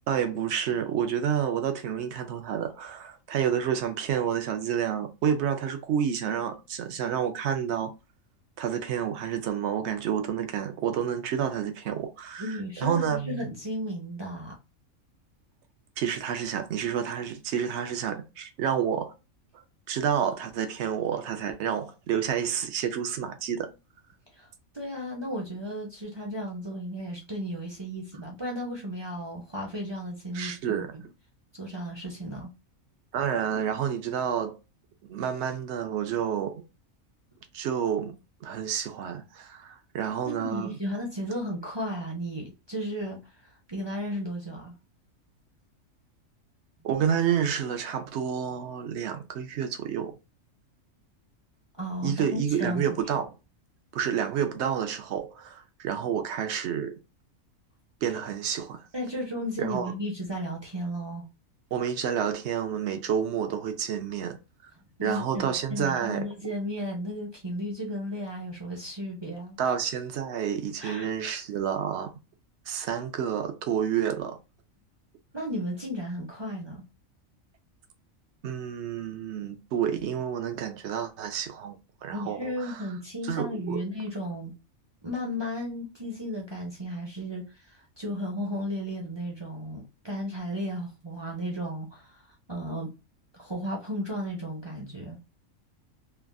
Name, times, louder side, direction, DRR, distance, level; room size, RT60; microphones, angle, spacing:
voice 1, 0.1-7.9 8.6-13.5 16.0-19.1 19.9-23.7 30.3-30.9 33.1-34.6 35.1-36.6 37.5-38.2 38.4-40.8 46.8-50.2 52.0-53.3 53.9-57.0 58.0-58.8 59.6-59.9 61.7-64.4 65.0-66.3 69.6-72.1 72.7-74.4 78.4-81.8 82.0-82.8 83.2-83.8, right 8 dB, 65° right, 0.8 m, -29 dB
voice 2, 12.4-14.5 24.3-24.5 24.7-31.0 31.5-32.5 40.2-44.7 51.8-52.2 52.6-53.0 58.9-61.3 65.0-69.7 70.8-71.4 75.3-76.8 82.1-84.5 85.0-92.2 92.5-92.9 93.3-95.2, equal, 30° right, 0.5 m, -34 dB
3.3 x 2.4 x 2.3 m
omnidirectional pair, 1.4 m